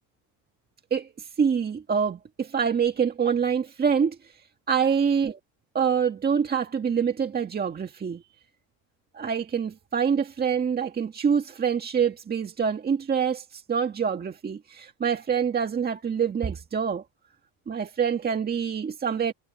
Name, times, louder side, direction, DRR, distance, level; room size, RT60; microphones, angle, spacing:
voice 1, 0.9-4.3 4.7-5.4 5.7-8.2 9.1-17.0 17.7-19.3, right 7 dB, 25° right, 1.7 m, -26 dB
cardioid pair, 120°, 38 cm